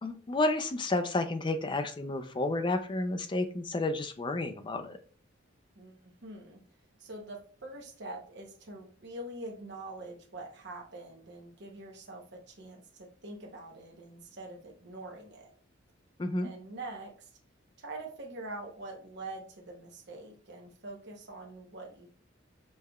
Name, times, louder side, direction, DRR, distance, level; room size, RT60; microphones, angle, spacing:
voice 1, 0.0-5.0 16.2-16.5, left 2 dB, 25° left, 8 dB, 0.4 m, -31 dB
voice 2, 5.7-6.6 7.0-15.5 16.4-17.3 17.8-22.1, right 2 dB, 60° right, 1 dB, 0.8 m, -44 dB
5.4 x 3.2 x 2.3 m, 0.42 s
head